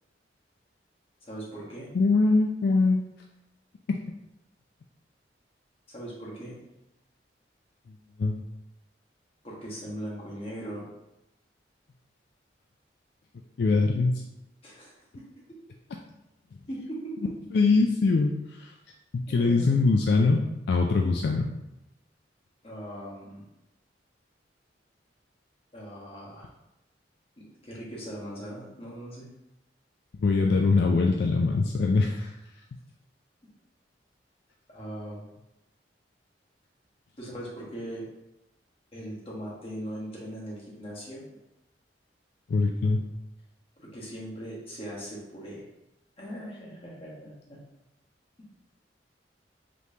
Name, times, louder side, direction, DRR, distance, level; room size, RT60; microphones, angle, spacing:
voice 1, 1.2-1.9 5.9-6.6 9.4-10.9 14.6-14.9 16.7-17.3 19.3-19.7 22.6-23.4 25.7-26.5 27.4-29.3 34.7-35.2 37.2-38.0 38.9-41.4 43.8-45.6 46.2-47.6, equal, 35° left, -5 dB, 1.3 m, -39 dB
voice 2, 1.9-3.0 3.9-4.0 8.2-8.4 13.6-14.2 17.5-18.3 18.6-18.7 19.1-21.5 30.2-32.3 42.5-43.0, left 3 dB, 65° left, 2 dB, 0.3 m, -23 dB
5.1 x 3.2 x 2.8 m, 0.90 s
head